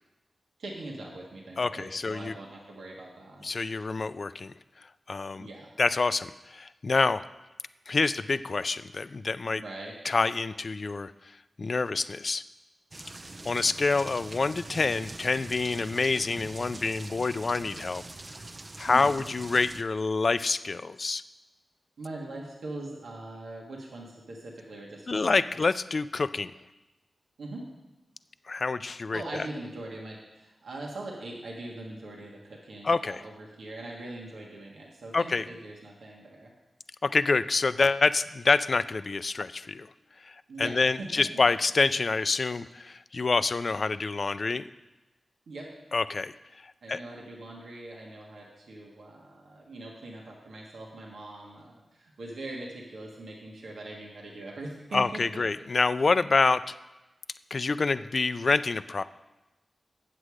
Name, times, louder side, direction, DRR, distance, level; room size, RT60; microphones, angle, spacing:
voice 1, 0.6-3.5 5.4-5.7 9.6-9.9 18.9-19.3 22.0-25.4 27.4-27.6 29.1-36.5 40.5-41.1 45.5-45.7 46.8-55.4, right 2 dB, 85° right, -2 dB, 1.5 m, -41 dB
voice 2, 1.6-2.3 3.4-4.5 5.1-5.5 5.8-7.2 7.9-9.6 10.0-11.1 11.6-12.4 13.4-18.0 18.8-21.2 25.1-26.5 28.5-29.2 32.8-33.2 35.1-35.4 37.0-39.9 40.2-44.6 45.9-46.4 46.6-47.0 54.9-56.7 57.5-59.0, left 4 dB, 50° left, 14 dB, 0.3 m, -27 dB
sound 1, 12.9-19.8, right 2 dB, 35° right, 0.5 m, -43 dB
8.2 x 7.6 x 4.9 m, 1.0 s
cardioid pair, 65°, 0 cm